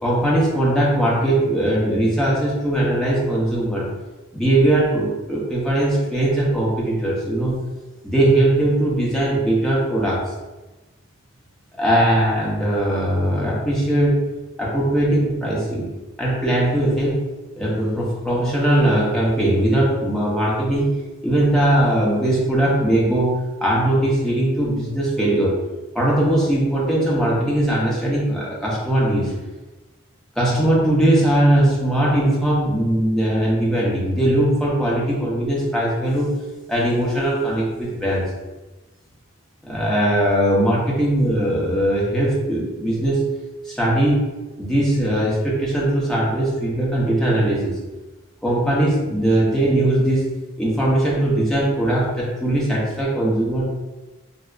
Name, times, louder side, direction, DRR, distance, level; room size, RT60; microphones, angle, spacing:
voice 1, 0.0-3.9 4.3-7.6 8.0-10.3 11.7-14.2 14.6-15.9 16.2-17.2 17.6-21.0 21.2-25.6 25.9-29.3 30.4-36.4 36.7-38.3 39.6-43.3 43.6-44.2 44.6-47.7 48.4-53.7, right 1 dB, 5° left, -6 dB, 0.7 m, -20 dB
3.5 x 2.7 x 2.3 m, 1.1 s
head